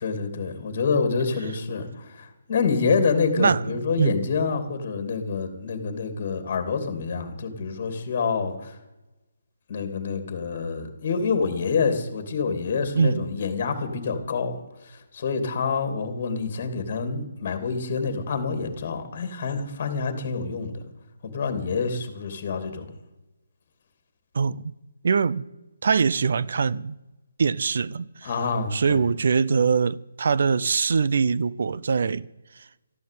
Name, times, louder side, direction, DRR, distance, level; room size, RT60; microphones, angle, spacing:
voice 1, 0.0-8.8 9.7-20.7 21.2-22.9 28.2-29.0, left 5 dB, 30° left, 2.7 m, -27 dB
voice 2, 25.0-25.4 25.8-27.0 27.4-28.3 28.7-32.3, right 5 dB, 50° right, 0.6 m, -22 dB
13.5 x 12.0 x 8.5 m
hypercardioid pair, 175°, 0 cm